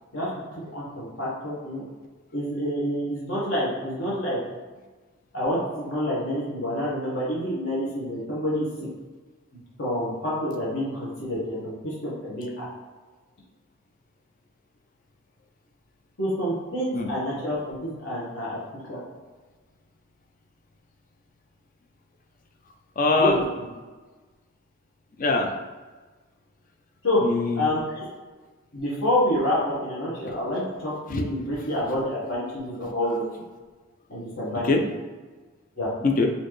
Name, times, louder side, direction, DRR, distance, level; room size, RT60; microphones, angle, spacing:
voice 1, 0.1-1.8 2.3-4.4 5.3-8.7 9.8-12.6 16.2-18.6 18.9-19.0 23.2-23.4 27.0-27.2 27.5-28.1 28.7-33.2 34.1-34.7 35.8-35.9, left 1 dB, 65° left, -7 dB, 1.3 m, -28 dB
voice 2, 23.0-23.4 25.2-25.5 27.2-27.7 31.1-31.2 32.8-32.9 34.6-34.8 36.0-36.3, left 3 dB, 40° left, 4 dB, 0.4 m, -22 dB
4.3 x 2.7 x 3.1 m, 1.3 s
head